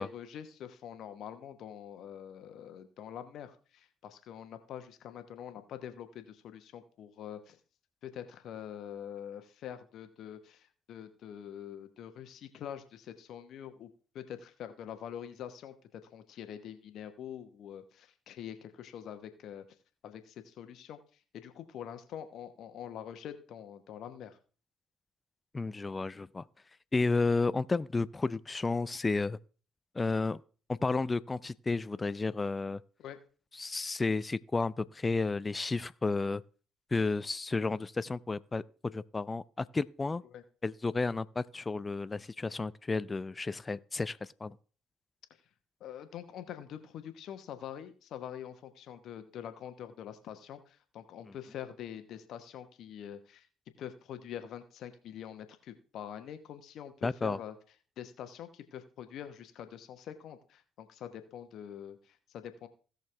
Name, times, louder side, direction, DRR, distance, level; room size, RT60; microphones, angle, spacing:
voice 1, 0.0-7.6 8.0-13.9 14.1-19.6 20.0-21.0 21.3-24.4 33.0-33.2 40.3-40.4 45.8-53.5 53.8-57.5 58.0-62.7, left 9 dB, 60° left, 1.1 m, -45 dB
voice 2, 25.5-26.4 26.9-29.4 29.9-30.4 30.7-32.8 33.6-36.4 36.9-40.2 40.6-44.5 57.0-57.4, left 3 dB, 25° left, 0.5 m, -32 dB
16.5 x 6.5 x 3.3 m
figure-of-eight pair, 50°, 0 cm